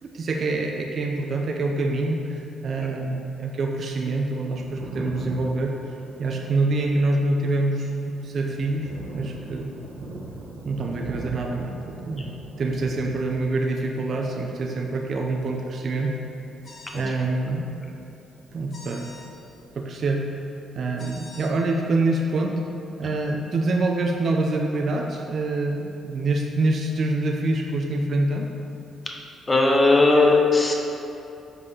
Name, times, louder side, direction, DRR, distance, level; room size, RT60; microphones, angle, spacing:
voice 1, 0.0-5.8 6.2-9.7 10.6-12.3 12.6-16.1 16.9-17.7 18.5-19.1 19.8-20.3 20.7-22.6 23.0-28.5, right 2 dB, 50° right, 1 dB, 0.7 m, -26 dB
Thunder, 4.5-18.8 19.0-20.3, right 1 dB, 70° right, 1.1 m, -41 dB
sound 1, 16.6-17.1 18.7-19.3 21.0-21.5, left 2 dB, 45° left, 1.6 m, -45 dB
voice 2, 29.5-30.7, left 3 dB, 25° left, 1 dB, 1.1 m, -18 dB
6.3 x 5.3 x 5.6 m, 2.8 s
cardioid pair, 90°, 0 cm